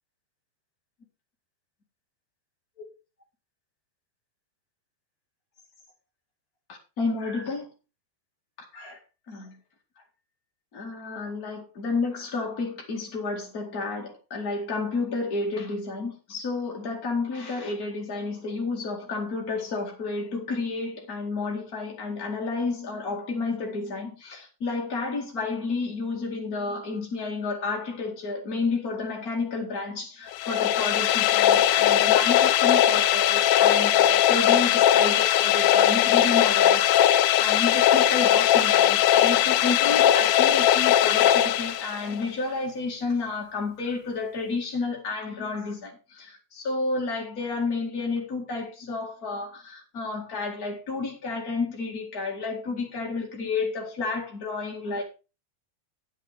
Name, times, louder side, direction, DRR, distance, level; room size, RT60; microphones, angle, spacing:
voice 1, 7.0-7.7 8.7-9.0 9.3-9.5 10.7-55.0, left 3 dB, 35° left, -1 dB, 1.5 m, -31 dB
sound 1, 30.3-42.2, left 11 dB, 80° left, 2.2 m, -20 dB
10.5 x 7.9 x 4.8 m, 0.31 s
omnidirectional pair, 4.9 m